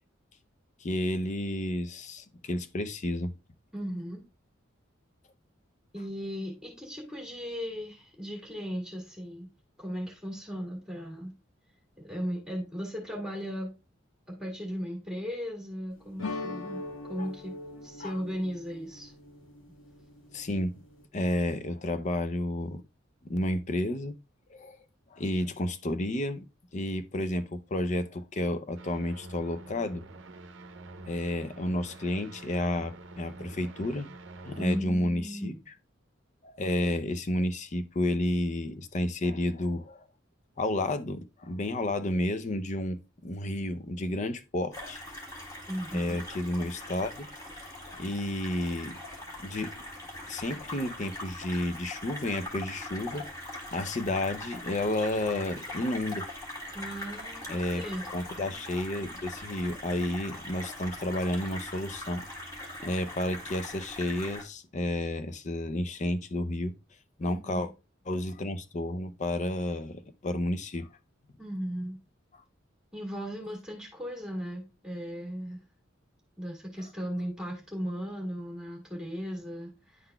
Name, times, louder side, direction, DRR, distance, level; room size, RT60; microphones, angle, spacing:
voice 1, 0.8-3.3 18.0-18.2 20.3-20.7 21.1-22.8 23.2-24.1 24.5-24.8 25.1-26.4 26.7-30.0 31.1-34.1 34.4-35.7 36.4-40.1 40.6-45.0 45.9-47.3 47.9-49.0 49.4-49.7 50.3-53.3 53.7-56.3 57.5-57.8 58.1-66.7 67.2-67.7 68.1-70.9, left 1 dB, 35° left, 0.5 m, -31 dB
voice 2, 3.7-4.2 5.9-9.5 9.8-11.3 12.0-13.7 14.3-17.5 17.8-19.1 34.5-35.6 45.7-46.2 56.7-58.0 67.2-67.7 71.4-72.0 72.9-75.6 76.4-80.1, equal, 5° right, 1.8 m, -37 dB
sound 1, 16.2-21.0, left 2 dB, 80° left, 1.0 m, -41 dB
sound 2, 28.8-34.8, right 2 dB, 65° right, 0.7 m, -46 dB
sound 3, 44.7-64.4, left 1 dB, 20° left, 1.8 m, -42 dB
11.0 x 3.9 x 2.2 m
head